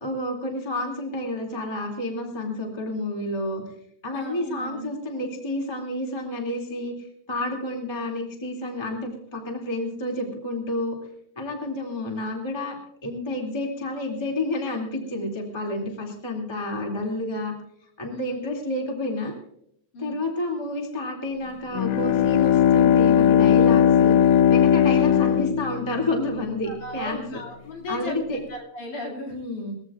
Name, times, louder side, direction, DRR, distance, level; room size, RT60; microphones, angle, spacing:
voice 1, 0.0-3.6 4.0-11.0 11.3-12.8 13.0-17.5 18.0-19.3 20.0-24.2 24.5-27.4 27.9-28.4 29.3-29.7, left 1 dB, 10° left, 1 dB, 1.5 m, -30 dB
voice 2, 4.1-4.9 18.1-18.4 19.9-20.2 26.6-28.2 28.5-29.4, left 1 dB, 50° left, 0 dB, 3.6 m, -36 dB
Bowed string instrument, 21.7-26.3, left 9 dB, 80° left, 2.0 m, -18 dB
22.5 x 15.5 x 2.5 m, 0.71 s
omnidirectional pair, 4.8 m